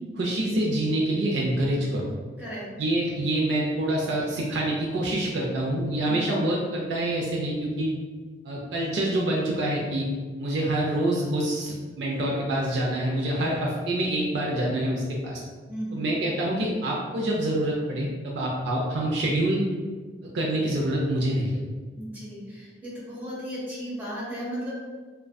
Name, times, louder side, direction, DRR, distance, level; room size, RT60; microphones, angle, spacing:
voice 1, 0.2-2.1 2.8-7.9 8.4-10.1 10.4-15.4 15.9-19.6 20.2-21.6, right 1 dB, 70° right, -3 dB, 0.4 m, -26 dB
voice 2, 15.7-16.1 21.9-24.7, equal, 10° right, -10 dB, 1.0 m, -35 dB
2.5 x 2.2 x 2.2 m, 1.4 s
head